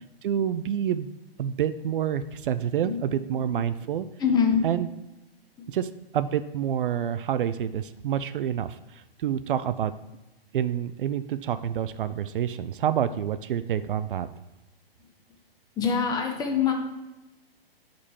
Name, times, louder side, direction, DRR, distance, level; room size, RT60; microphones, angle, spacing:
voice 1, 0.2-1.1 1.4-4.1 4.6-4.9 5.7-9.9 10.5-14.3, right 9 dB, 60° right, 13 dB, 0.4 m, -28 dB
voice 2, 4.2-4.6 5.6-5.7 15.8-16.7, left 6 dB, 15° left, 3 dB, 0.7 m, -25 dB
6.8 x 5.2 x 4.3 m, 0.99 s
hypercardioid pair, 135°, 30 cm